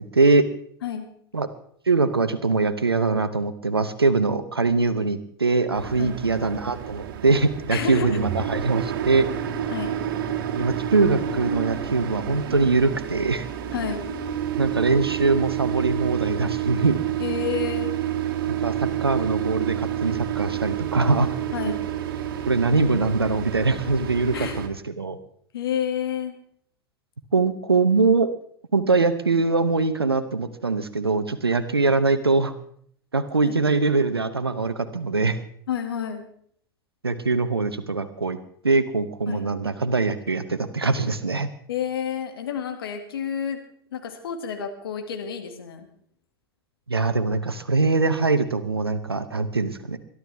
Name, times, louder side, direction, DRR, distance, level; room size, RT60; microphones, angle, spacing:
voice 1, 0.1-0.4 1.3-1.5 1.9-9.3 10.6-13.5 14.6-17.0 18.5-21.3 21.6-21.7 22.5-25.2 27.3-28.3 28.7-32.5 33.1-35.4 37.0-38.4 38.6-41.5 46.9-50.0, right 3 dB, 90° right, 10 dB, 0.9 m, -22 dB
sound 1, 5.7-24.7, right 10 dB, 60° right, 2.2 m, -29 dB
voice 2, 7.7-8.2 9.7-9.9 13.7-14.0 17.2-17.9 21.5-21.8 24.3-24.6 25.5-26.4 33.4-33.6 35.7-36.2 39.3-39.4 41.7-43.6 43.9-45.9, left 8 dB, 70° left, 5 dB, 2.2 m, -29 dB
22.5 x 12.5 x 3.5 m, 0.62 s
figure-of-eight pair, 90°, 13 cm